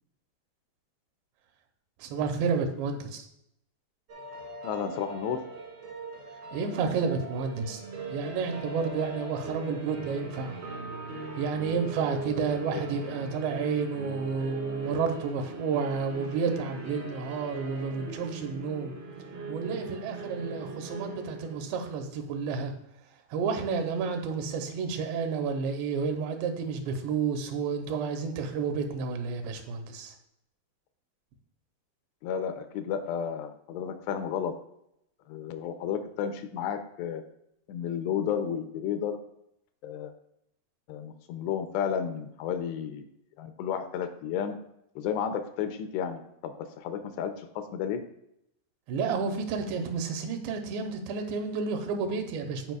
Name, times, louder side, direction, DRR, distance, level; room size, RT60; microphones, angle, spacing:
voice 1, 2.0-3.3 6.5-10.6 11.4-18.9 19.5-22.7 23.3-30.1 48.9-52.8, right 5 dB, 85° right, 5 dB, 3.0 m, -31 dB
sound 1, 4.1-22.2, right 2 dB, 70° right, 1.1 m, -40 dB
voice 2, 4.6-5.4 32.2-34.5 35.3-37.2 37.7-39.2 39.8-40.1 40.9-43.0 43.4-44.6 45.0-48.0, left 8 dB, 80° left, 8 dB, 2.7 m, -32 dB
13.5 x 4.8 x 2.3 m, 0.79 s
omnidirectional pair, 5.0 m